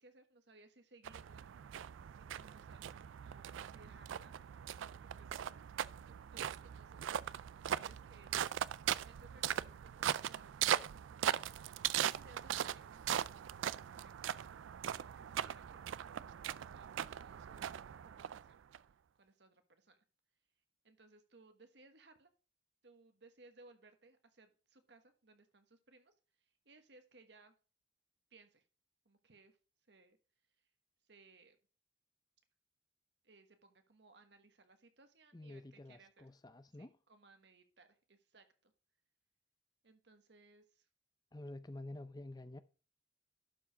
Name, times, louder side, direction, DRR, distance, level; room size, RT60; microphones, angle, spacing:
voice 1, 0.0-1.5 2.2-2.9 3.2-4.4 4.9-5.5 6.0-7.1 7.5-8.6 9.0-11.9 12.1-13.4 13.7-17.8 18.0-18.7 19.2-20.0 20.8-22.3 22.8-27.5 28.3-28.6 29.0-29.6 29.9-30.2 31.1-31.6 33.2-36.3 36.8-38.7 39.8-40.9, right 3 dB, 65° right, 1.3 m, -64 dB
sound 1, 1.0-18.8, right 10 dB, 85° right, 0.3 m, -40 dB
voice 2, 35.3-36.9 41.3-42.6, left 1 dB, 20° left, 0.5 m, -49 dB
12.0 x 4.7 x 5.0 m
head